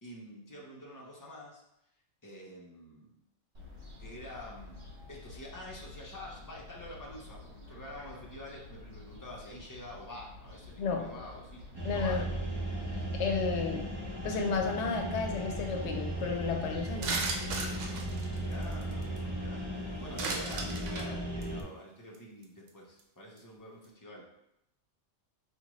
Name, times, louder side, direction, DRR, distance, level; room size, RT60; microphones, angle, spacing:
voice 1, 0.0-1.6 2.2-3.1 4.0-11.6 11.9-12.3 18.3-24.3, left 1 dB, 20° left, -3 dB, 0.6 m, -47 dB
Fowl, 3.5-18.7, left 2 dB, 65° right, 1.1 m, -50 dB
voice 2, 10.8-11.1 11.8-12.3 13.1-13.9 14.2-17.2, left 5 dB, 75° left, 4 dB, 0.9 m, -32 dB
sound 1, 11.7-21.6, right 1 dB, 30° right, 0.5 m, -36 dB
sound 2, 17.0-19.2 20.2-21.1 21.4-21.6 22.1-22.2 22.4-22.7 23.0-23.1, right 3 dB, 90° right, 0.9 m, -35 dB
4.7 x 2.4 x 3.0 m, 0.82 s
omnidirectional pair, 1.2 m